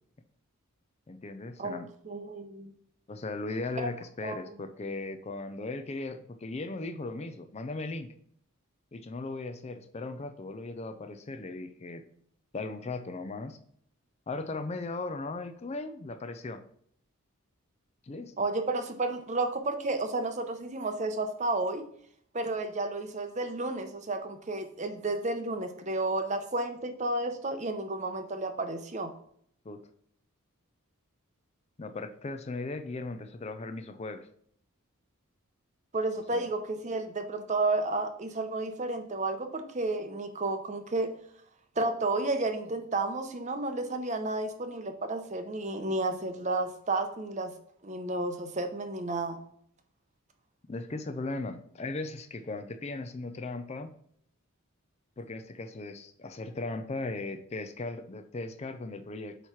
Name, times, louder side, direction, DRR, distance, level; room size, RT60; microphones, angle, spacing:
voice 1, 1.1-1.9 3.1-8.1 8.9-12.0 12.5-13.6 14.3-16.6 18.0-18.3 29.6-29.8 31.8-34.3 36.3-36.5 50.7-53.9 55.2-59.4, left 3 dB, 30° left, 8 dB, 0.4 m, -37 dB
voice 2, 2.1-2.7 3.8-3.9 4.2-4.4 18.4-21.8 22.3-29.1 35.9-41.1 41.8-47.5 47.8-49.4, right 2 dB, 30° right, 8 dB, 0.7 m, -32 dB
8.0 x 3.1 x 5.7 m, 0.65 s
head